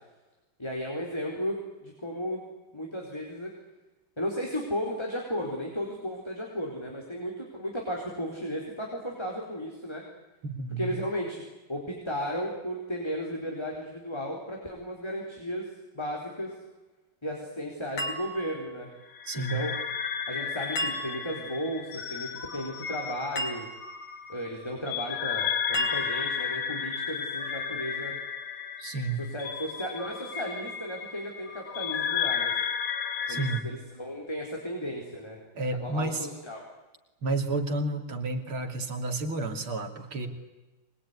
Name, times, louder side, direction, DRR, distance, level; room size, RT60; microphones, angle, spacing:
voice 1, 0.6-2.4 2.7-3.5 4.2-10.0 10.8-11.4 11.7-15.7 15.9-16.5 17.2-18.9 19.3-19.7 20.3-23.7 24.3-28.2 29.2-32.6 33.3-35.4 35.8-36.6, equal, 10° left, -1 dB, 4.2 m, -34 dB
voice 2, 10.4-10.9 19.3-19.6 28.8-29.2 33.3-33.7 35.6-36.3 37.2-40.3, right 2 dB, 75° right, 4 dB, 3.6 m, -31 dB
sound 1, 18.0-18.9 20.8-21.5 23.4-24.0 25.7-26.5, equal, 60° left, 4.0 m, -35 dB
sound 2, 19.2-33.6, left 7 dB, 85° left, 2.9 m, -33 dB
24.5 x 21.5 x 9.7 m, 1.1 s
omnidirectional pair, 2.3 m